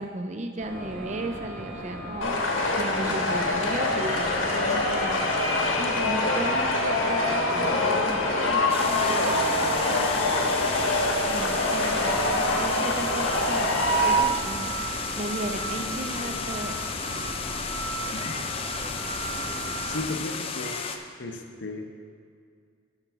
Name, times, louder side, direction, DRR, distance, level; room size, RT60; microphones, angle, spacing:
voice 1, 0.0-5.2 5.8-11.0 11.3-16.9, right 1 dB, 35° right, 6 dB, 0.5 m, -35 dB
sound 1, 0.6-20.0, right 1 dB, 75° right, 2.1 m, -36 dB
sound 2, 2.2-14.2, left 2 dB, 80° left, 1.2 m, -25 dB
sound 3, 8.7-21.0, left 5 dB, 30° left, 0.4 m, -33 dB
voice 2, 18.1-18.4 19.9-20.8 21.2-21.9, left 2 dB, 60° left, 4 dB, 0.7 m, -34 dB
7.7 x 6.0 x 5.7 m, 2.2 s
head